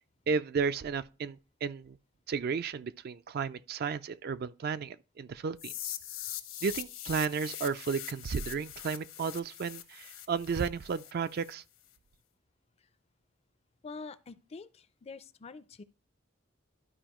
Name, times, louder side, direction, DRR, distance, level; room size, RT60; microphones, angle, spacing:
voice 1, 0.3-2.0 2.3-6.0 6.6-11.6, right 5 dB, 50° right, 0.3 m, -33 dB
sound 1, 5.6-11.5, left 12 dB, 85° left, 1.1 m, -42 dB
voice 2, 13.8-15.8, left 4 dB, 30° left, 0.4 m, -46 dB
12.5 x 4.8 x 3.0 m
head